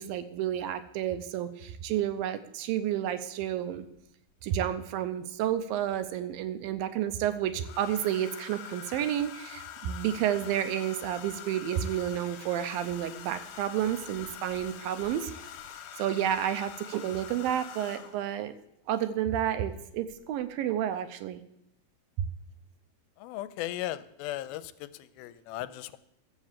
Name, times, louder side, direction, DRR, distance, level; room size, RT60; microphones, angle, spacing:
voice 1, 0.0-3.9 4.4-15.3 16.0-18.6 18.9-21.4 22.2-22.3, right 10 dB, 80° right, 10 dB, 2.3 m, -30 dB
Domestic sounds home sounds, 4.0-4.1 5.5-6.2 7.6-18.3 19.6-19.8 20.1-20.5, left 10 dB, 65° left, 2.4 m, -45 dB
voice 2, 23.2-24.9 25.2-26.0, left 14 dB, 85° left, 13 dB, 2.4 m, -36 dB
13.0 x 7.4 x 7.4 m, 0.80 s
omnidirectional pair, 4.3 m